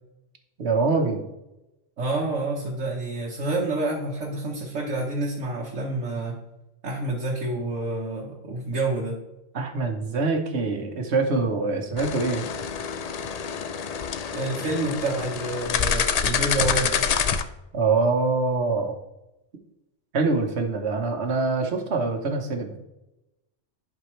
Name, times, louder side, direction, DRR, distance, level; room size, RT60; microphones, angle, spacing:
voice 1, 0.6-1.2 9.5-12.5 17.7-18.9 20.1-22.8, right 3 dB, 65° right, 5 dB, 1.3 m, -24 dB
voice 2, 2.0-6.4 6.8-9.2 14.3-17.0, right 2 dB, 85° right, -3 dB, 1.5 m, -28 dB
sound 1, 12.0-17.4, left 7 dB, 75° left, 0.3 m, -27 dB
11.0 x 5.2 x 3.2 m, 0.95 s
omnidirectional pair, 1.3 m